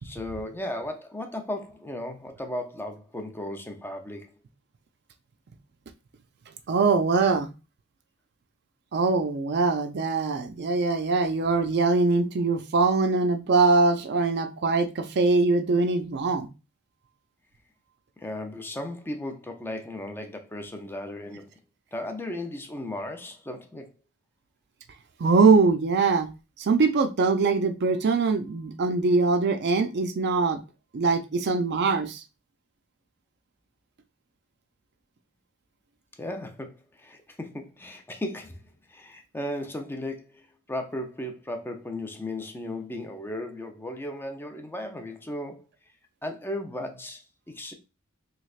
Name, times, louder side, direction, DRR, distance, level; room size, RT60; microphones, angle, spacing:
voice 1, 0.0-4.3 18.2-21.5 21.9-23.9 36.2-38.6 38.9-45.6 46.2-47.7, left 1 dB, 10° left, 0.5 m, -36 dB
voice 2, 6.7-7.5 8.9-16.5 25.2-26.3 26.6-30.6 30.9-32.2, right 4 dB, 50° right, 0.4 m, -22 dB
3.4 x 3.2 x 2.4 m
head